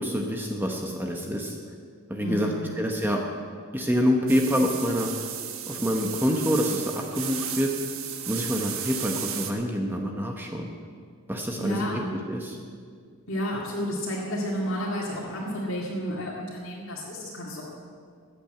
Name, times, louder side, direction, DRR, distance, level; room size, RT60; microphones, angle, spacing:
voice 1, 0.0-1.6 2.1-3.2 3.7-5.1 5.7-7.7 8.3-10.7 11.3-12.6, equal, 10° right, 1 dB, 0.9 m, -27 dB
voice 2, 2.2-2.7 11.6-12.1 13.3-17.7, equal, 65° left, -6 dB, 2.3 m, -31 dB
sound 1, 4.3-9.5, right 9 dB, 70° right, 1.3 m, -34 dB
14.5 x 8.9 x 7.8 m, 2.1 s
head